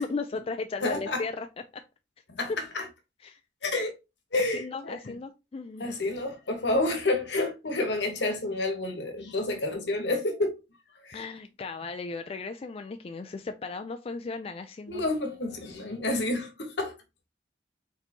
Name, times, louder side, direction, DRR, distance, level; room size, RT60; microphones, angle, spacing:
voice 1, 0.0-1.5 1.7-1.8 3.2-3.4 4.4-5.9 11.1-15.0, left 4 dB, 35° left, 0.4 m, -36 dB
voice 2, 0.8-1.2 2.4-2.8 3.6-3.9 4.3-5.1 5.8-10.6 11.0-11.2 14.9-17.0, left 2 dB, 75° left, 1.2 m, -29 dB
4.3 x 4.1 x 2.9 m
head